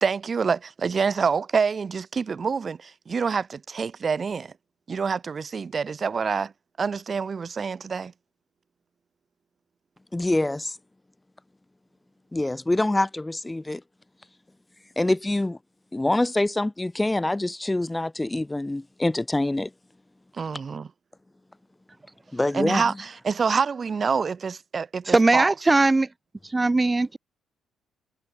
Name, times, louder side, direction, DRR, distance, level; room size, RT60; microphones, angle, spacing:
voice 1, 0.0-4.5 4.9-6.5 6.8-8.1 20.3-20.9 22.5-25.5, right 5 dB, 35° right, 2.0 m, -26 dB
voice 2, 10.1-10.8 12.3-13.8 15.0-15.6 15.9-19.7 22.3-22.9, left 2 dB, 10° left, 1.6 m, -25 dB
voice 3, 25.1-26.1 26.5-27.2, right 2 dB, 15° right, 3.8 m, -20 dB
cardioid pair, 115°, 0 cm